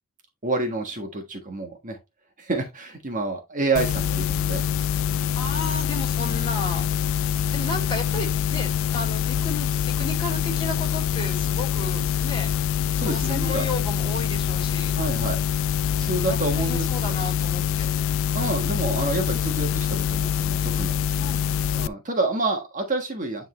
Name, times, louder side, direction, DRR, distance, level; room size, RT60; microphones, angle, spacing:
voice 1, 0.4-2.0 2.4-4.7 12.9-13.7 14.9-15.4 16.0-17.1 18.3-21.0 21.7-23.5, right 3 dB, 35° right, 1.4 m, -28 dB
sound 1, 3.8-21.9, left 8 dB, 65° left, 0.3 m, -25 dB
voice 2, 5.3-12.5 12.9-14.9 16.2-17.9 21.2-21.5, left 2 dB, 25° left, 3.3 m, -33 dB
9.9 x 3.8 x 3.1 m
head